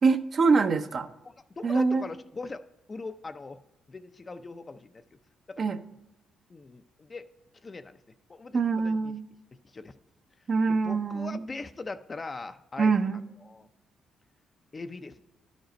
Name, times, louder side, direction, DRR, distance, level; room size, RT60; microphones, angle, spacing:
voice 1, 0.0-1.1 1.6-2.1 5.6-5.8 8.5-9.2 10.5-11.5 12.8-13.2, right 4 dB, 45° right, 8 dB, 0.6 m, -24 dB
voice 2, 1.5-3.6 3.9-5.0 5.5-5.6 6.5-7.3 7.6-8.0 8.3-9.1 9.6-9.9 10.8-12.9 13.5-13.7 14.7-15.2, left 3 dB, 30° left, 10 dB, 0.5 m, -40 dB
12.0 x 5.2 x 5.1 m, 0.98 s
cardioid pair, 90°, 0 cm